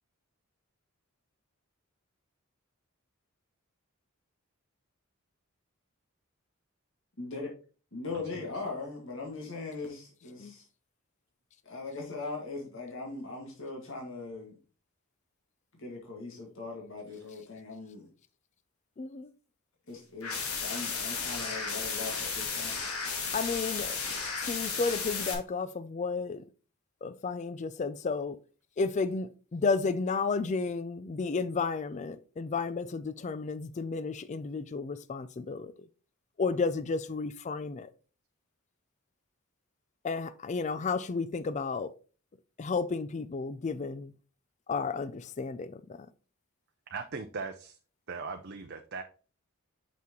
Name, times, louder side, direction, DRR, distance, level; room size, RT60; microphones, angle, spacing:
voice 1, 7.2-7.5 7.9-10.6 11.6-14.6 15.7-18.1 19.9-22.8, left 3 dB, 60° left, 1.8 m, -40 dB
voice 2, 8.1-8.5 46.9-47.8 48.1-49.0, right 4 dB, 50° right, 0.6 m, -39 dB
voice 3, 19.0-19.3 23.3-24.0 24.4-26.4 27.0-28.4 28.8-35.7 36.4-37.9 40.0-41.9 42.6-44.1 44.7-45.8, left 4 dB, 35° left, 0.4 m, -32 dB
sound 1, 20.2-25.3, left 5 dB, 90° left, 1.7 m, -34 dB
6.1 x 5.8 x 3.0 m
head